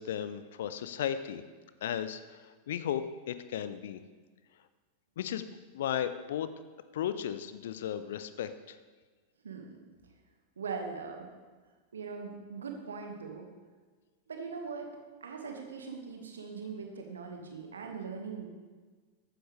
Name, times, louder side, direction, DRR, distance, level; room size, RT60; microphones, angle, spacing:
voice 1, 0.0-1.4 1.8-4.0 5.2-5.4 5.7-6.5 6.9-8.8, left 9 dB, 60° left, 13 dB, 0.6 m, -35 dB
voice 2, 9.4-9.8 10.6-11.3 11.9-13.5 14.3-14.9 15.2-18.5, right 5 dB, 70° right, 2 dB, 1.7 m, -40 dB
14.0 x 9.8 x 3.4 m, 1.4 s
figure-of-eight pair, 90°, 0 cm